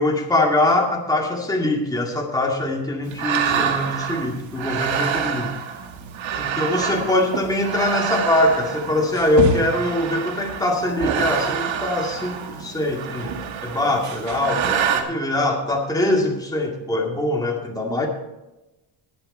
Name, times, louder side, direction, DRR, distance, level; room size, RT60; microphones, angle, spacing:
voice 1, 0.0-5.5 6.4-18.1, left 1 dB, 10° left, 0 dB, 2.2 m, -22 dB
sound 1, 3.1-15.0, right 7 dB, 80° right, 1.8 m, -26 dB
19.5 x 7.7 x 4.3 m, 0.97 s
cardioid pair, 140°, 45 cm